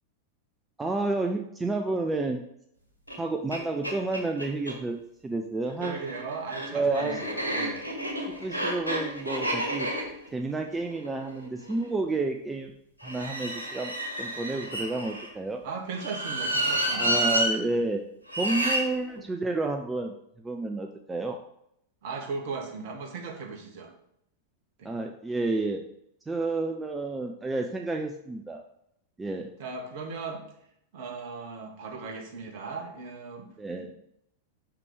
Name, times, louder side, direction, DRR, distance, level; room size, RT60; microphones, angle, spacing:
voice 1, 0.8-2.4 3.2-5.0 5.2-6.0 6.7-7.2 8.3-9.9 10.3-12.7 13.0-13.9 14.2-15.6 16.9-18.0 18.4-21.4 24.8-25.8 26.3-28.6 29.2-29.5 33.6-33.9, right 3 dB, 10° right, 3 dB, 0.6 m, -30 dB
sound 1, 3.1-3.2 3.5-3.6 3.8-4.8 5.7-11.8 13.0-15.3 15.9-17.5 18.3-18.8, right 1 dB, 85° right, 2.0 m, -30 dB
voice 2, 5.8-7.9 15.6-17.1 19.1-19.2 22.0-23.9 24.8-24.9 29.6-30.4 30.9-33.5 33.8-33.9, right 4 dB, 50° right, 3 dB, 1.5 m, -37 dB
6.1 x 5.9 x 5.0 m, 0.75 s
figure-of-eight pair, 90°, 0 cm